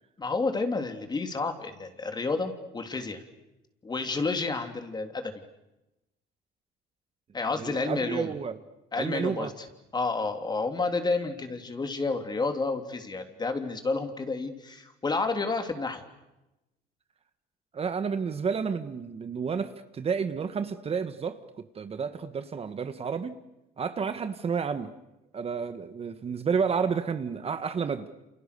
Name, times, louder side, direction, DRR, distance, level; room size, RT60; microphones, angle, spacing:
voice 1, 0.2-3.2 3.8-5.3 7.3-8.3 8.9-9.5 9.9-16.0, left 3 dB, 25° left, 3.3 m, -30 dB
voice 2, 7.6-8.6 9.0-9.5 17.7-21.4 21.7-23.4 23.8-24.9 25.3-28.2, right 6 dB, 35° right, 1.6 m, -30 dB
29.0 x 28.0 x 6.9 m
cardioid pair, 110°, 17 cm